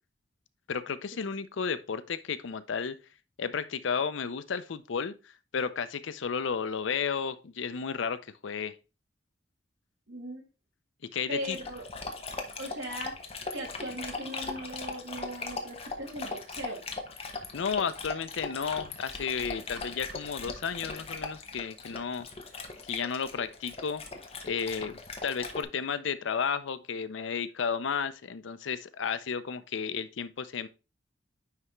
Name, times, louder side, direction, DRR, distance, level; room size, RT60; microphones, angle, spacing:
voice 1, 0.7-3.0 3.4-5.1 5.5-8.7 11.1-11.6 17.5-22.3 22.9-24.0 24.4-30.7, left 6 dB, 80° left, 0.5 m, -33 dB
voice 2, 10.1-10.5 11.3-11.9 12.6-13.2 13.5-16.8, right 1 dB, 80° right, 2.3 m, -39 dB
Dog, 11.4-25.6, left 3 dB, 30° left, 0.8 m, -39 dB
9.4 x 3.4 x 3.0 m
head